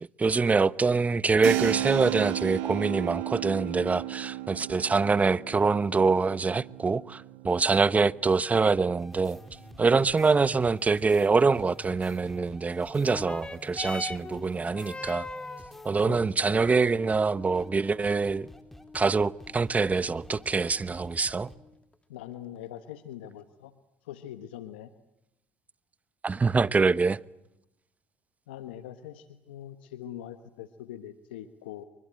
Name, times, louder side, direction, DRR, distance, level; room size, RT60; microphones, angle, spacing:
voice 1, 0.0-9.4 9.8-15.3 15.8-18.5 18.9-21.5 26.2-27.2, right 4 dB, 25° right, 0.9 m, -25 dB
Keyboard (musical), 1.4-9.8, right 15 dB, 80° right, 1.9 m, -35 dB
sound 1, 9.0-16.3 16.6-16.8 17.1-17.2 17.5-17.7 18.0-21.5, equal, 5° left, 3.6 m, -50 dB
sound 2, 13.0-21.9 22.8-22.9, left 2 dB, 20° left, 1.7 m, -43 dB
voice 2, 16.0-16.6 22.1-23.7 24.0-24.9 28.5-31.8, left 11 dB, 90° left, 1.2 m, -42 dB
29.5 x 24.0 x 7.7 m
hypercardioid pair, 65°, 5 cm